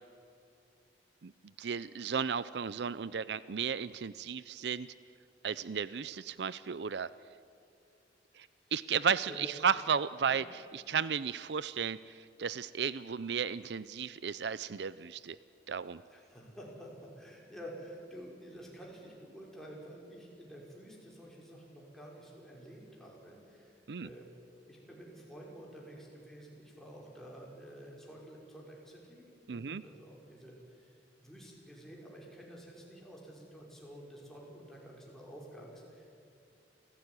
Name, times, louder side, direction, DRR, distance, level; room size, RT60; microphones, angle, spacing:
voice 1, 1.6-4.9 5.4-7.1 8.4-15.4 15.7-16.0 23.9-24.1 29.5-29.8, right 6 dB, 70° right, 17 dB, 0.5 m, -34 dB
voice 2, 16.1-24.3 24.7-36.1, equal, ahead, -3 dB, 5.7 m, -50 dB
28.5 x 16.5 x 9.8 m, 2.5 s
head